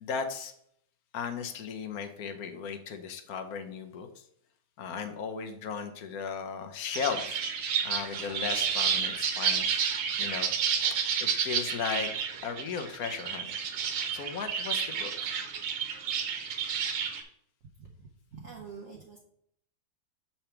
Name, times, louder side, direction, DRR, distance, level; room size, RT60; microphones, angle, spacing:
voice 1, 0.0-0.5 1.1-4.2 4.8-7.4 7.8-9.8 10.2-10.5 11.2-12.1 12.4-13.5 14.1-15.4, left 6 dB, 60° left, 7 dB, 1.1 m, -36 dB
sound 1, 6.9-17.2, right 7 dB, 80° right, 1.7 m, -31 dB
voice 2, 18.3-19.2, right 5 dB, 55° right, -1 dB, 1.1 m, -45 dB
7.3 x 5.8 x 3.3 m, 0.69 s
omnidirectional pair, 2.2 m